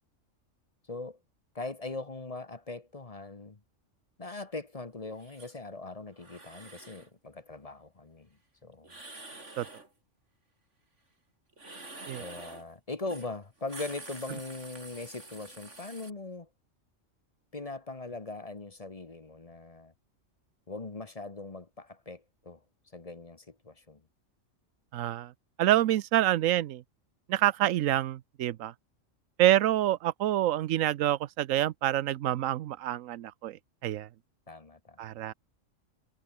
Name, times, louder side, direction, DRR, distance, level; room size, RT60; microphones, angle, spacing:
voice 1, 0.9-1.2 1.5-3.6 4.2-8.9 12.2-16.5 17.5-19.9 20.7-22.6 22.9-24.0 34.5-35.2, left 3 dB, 30° left, 1.3 m, -41 dB
sound 1, 5.2-5.5 6.2-7.1 8.8-9.9 11.5-12.7 13.1-13.3 13.6-16.1, right 2 dB, 65° right, 4.8 m, -47 dB
voice 2, 24.9-25.3 25.6-26.8 27.3-28.7 29.4-34.1 35.0-35.3, right 13 dB, 90° right, 1.0 m, -27 dB
omnidirectional pair, 1.3 m